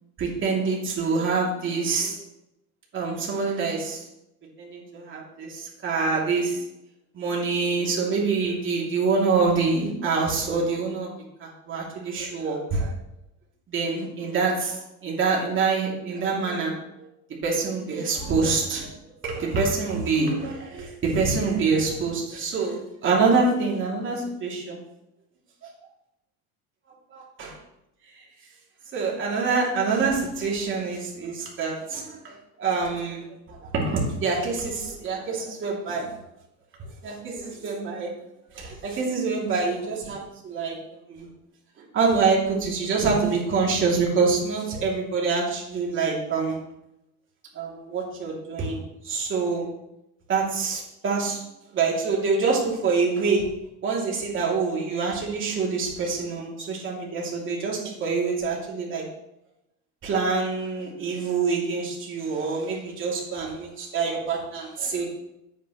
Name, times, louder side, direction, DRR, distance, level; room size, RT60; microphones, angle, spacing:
voice 1, 0.2-2.2 2.9-4.0 4.6-6.6 7.1-11.1 11.4-12.9 13.7-17.1 17.4-18.9 19.2-24.8 25.6-25.7 27.1-27.6 28.1-28.2 28.9-36.1 37.0-38.1 38.5-40.8 41.1-41.3 41.8-46.6 47.5-49.7 50.3-51.4 51.7-53.5 53.8-59.0 60.0-65.0, right 4 dB, 35° right, -3 dB, 3.1 m, -26 dB
9.3 x 8.8 x 3.3 m, 0.86 s
cardioid pair, 130°, 33 cm